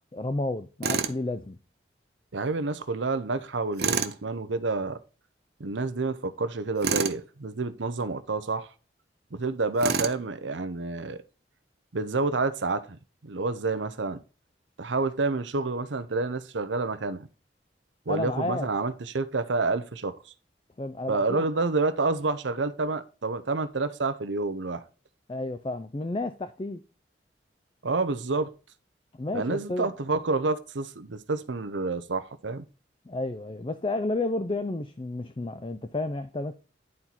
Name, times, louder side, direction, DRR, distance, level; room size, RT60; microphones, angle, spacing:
voice 1, 0.1-1.6 18.1-18.7 20.8-21.4 25.3-26.8 29.1-29.9 33.1-36.5, left 2 dB, 30° left, 0.4 m, -31 dB
Tools, 0.8-1.2 3.8-4.2 6.8-7.2 9.8-10.2, right 5 dB, 60° right, 0.7 m, -27 dB
voice 2, 2.3-5.0 5.6-8.7 9.3-11.2 11.9-13.0 13.2-14.2 14.8-17.3 18.1-20.1 21.1-24.8 27.8-28.5 29.3-32.6, right 3 dB, 90° right, 0.8 m, -28 dB
11.0 x 4.4 x 4.1 m
head